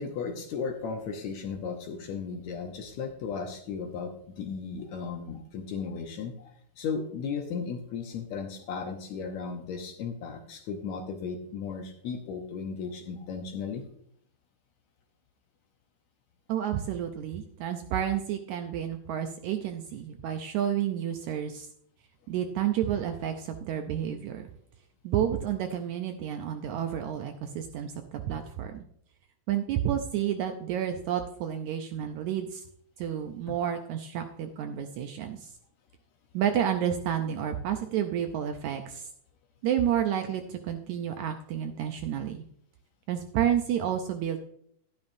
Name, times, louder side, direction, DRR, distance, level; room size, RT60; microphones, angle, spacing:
voice 1, 0.0-4.1 4.4-6.5 6.8-13.8 33.5-33.6, left 5 dB, 70° left, 4 dB, 1.9 m, -35 dB
voice 2, 16.5-21.7 22.3-24.5 25.0-28.9 29.5-32.6 33.0-35.5 36.3-39.1 39.6-42.5 43.1-44.4, right 10 dB, 75° right, 6 dB, 1.8 m, -30 dB
12.0 x 10.5 x 2.6 m, 0.68 s
omnidirectional pair, 3.9 m